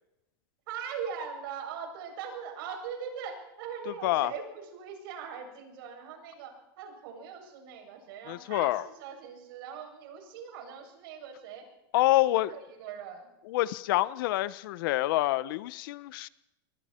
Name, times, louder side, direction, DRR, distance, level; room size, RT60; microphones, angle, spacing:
voice 1, 0.7-11.6 11.9-12.1 12.5-13.3, right 7 dB, 65° right, 2 dB, 7.6 m, -41 dB
voice 2, 3.9-4.3 8.3-8.8 11.9-12.5 13.4-16.3, left 17 dB, 65° left, 17 dB, 1.0 m, -27 dB
28.0 x 22.0 x 4.5 m, 0.90 s
supercardioid pair, 150°, 13 cm